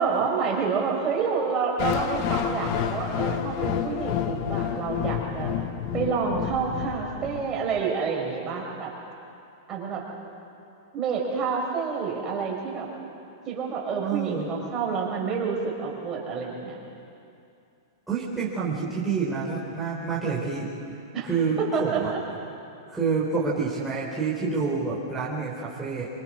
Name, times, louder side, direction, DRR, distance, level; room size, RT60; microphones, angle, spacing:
voice 1, 0.0-5.5 5.9-8.9 9.7-10.0 10.9-12.9 13.5-16.8 21.1-21.3 21.6-22.2, right 5 dB, 25° right, -2 dB, 5.6 m, -28 dB
sound 1, 1.8-7.8, left 9 dB, 45° left, 1.4 m, -29 dB
voice 2, 14.0-14.5 18.1-20.7 21.2-22.1 22.9-26.1, right 5 dB, 5° right, -8 dB, 4.2 m, -28 dB
25.5 x 23.0 x 6.4 m, 2.6 s
hypercardioid pair, 130°, 2 cm